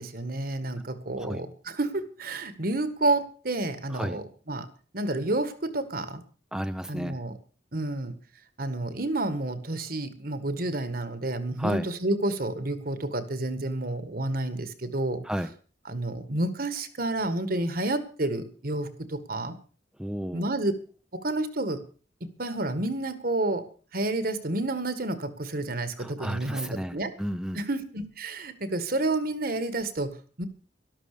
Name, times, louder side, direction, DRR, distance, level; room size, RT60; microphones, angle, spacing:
voice 1, 0.0-4.7 4.9-6.2 6.9-7.3 7.7-8.1 8.6-15.2 15.9-19.5 20.3-20.7 21.1-21.8 22.2-23.6 23.9-27.1 27.5-30.5, right 2 dB, 55° right, 12 dB, 1.8 m, -30 dB
voice 2, 3.9-4.2 6.5-7.2 11.6-11.9 15.2-15.5 20.0-20.5 26.0-27.6, equal, 5° right, 8 dB, 0.7 m, -32 dB
13.0 x 12.5 x 6.8 m, 0.39 s
head